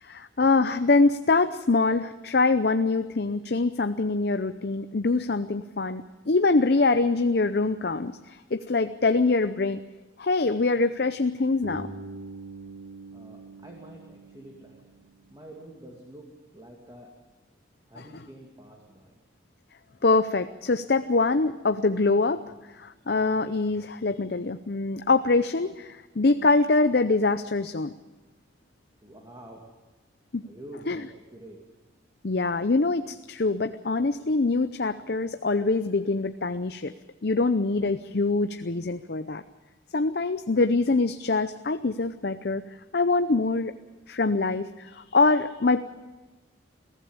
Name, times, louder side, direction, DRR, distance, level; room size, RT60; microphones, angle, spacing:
voice 1, 0.0-9.8 10.2-11.9 18.0-18.1 20.0-22.4 22.8-27.9 30.3-30.4 30.9-31.0 32.2-36.9 37.2-39.4 39.9-42.6 42.9-43.7 44.1-45.8, left 3 dB, 55° left, 10 dB, 0.6 m, -24 dB
Bass guitar, 11.6-15.6, right 3 dB, 60° right, 3.0 m, -43 dB
voice 2, 13.1-15.0 15.3-16.3 16.5-17.1 17.9-19.2 29.0-29.7 30.4-31.6, right 1 dB, 20° right, 0 dB, 2.6 m, -47 dB
22.0 x 15.0 x 8.9 m, 1.2 s
head